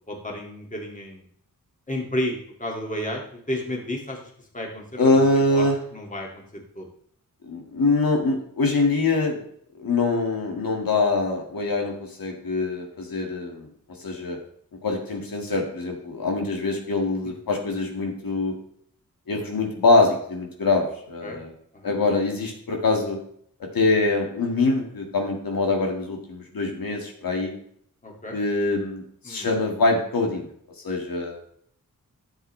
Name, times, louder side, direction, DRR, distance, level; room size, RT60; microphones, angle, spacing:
voice 1, 0.1-1.2 1.9-5.7 5.9-6.9 21.2-21.4 21.7-21.9 23.8-24.0 28.0-28.4 29.2-29.5, left 1 dB, 20° left, 0 dB, 2.3 m, -32 dB
voice 2, 5.0-5.8 7.4-9.4 9.8-13.7 14.0-14.4 14.8-18.6 19.3-21.5 21.8-23.2 23.6-27.5 28.3-30.5 30.8-31.4, left 3 dB, 80° left, 1 dB, 2.1 m, -24 dB
12.5 x 7.4 x 3.3 m, 0.65 s
wide cardioid pair, 110°, 34 cm